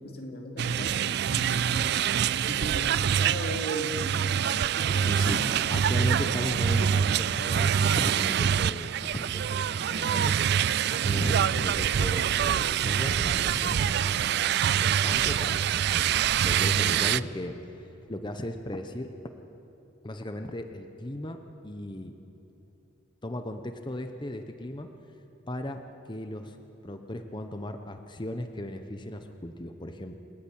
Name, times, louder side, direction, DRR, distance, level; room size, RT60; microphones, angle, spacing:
voice 1, 0.0-6.1 11.1-11.3, right 1 dB, 55° left, 2 dB, 2.6 m, -38 dB
sound 1, 0.6-17.2, right 8 dB, 55° right, 0.3 m, -25 dB
voice 2, 4.7-5.4 5.7-14.3 14.5-16.1 16.4-17.6 18.1-19.2 20.0-22.2 23.2-24.9 25.5-30.2, left 1 dB, 25° left, 6 dB, 0.9 m, -36 dB
sound 2, 4.8-5.8 6.4-7.4 8.0-8.4, right 4 dB, 40° right, 0.8 m, -47 dB
28.5 x 10.5 x 8.8 m, 2.9 s
head